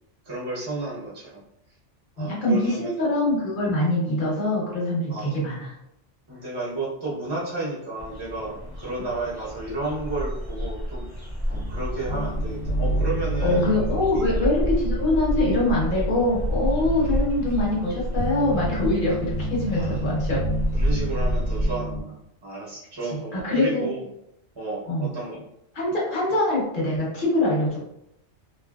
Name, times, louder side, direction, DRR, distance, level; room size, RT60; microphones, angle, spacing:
voice 1, 0.2-1.4 2.2-2.9 5.1-5.4 6.3-11.1 11.5-13.7 14.1-14.3 17.0-17.2 19.7-20.1 20.7-22.2 22.4-24.0 24.5-25.4, right 2 dB, 25° right, -6 dB, 0.8 m, -32 dB
voice 2, 2.2-5.7 13.4-20.4 23.3-23.9 24.9-25.1 25.7-27.8, left 1 dB, 50° left, -5 dB, 1.0 m, -24 dB
sound 1, 8.0-21.7, equal, 25° left, 0.6 m, -30 dB
sound 2, 11.5-22.0, right 1 dB, 80° left, 1.1 m, -30 dB
2.7 x 2.5 x 2.3 m, 0.81 s
omnidirectional pair, 1.2 m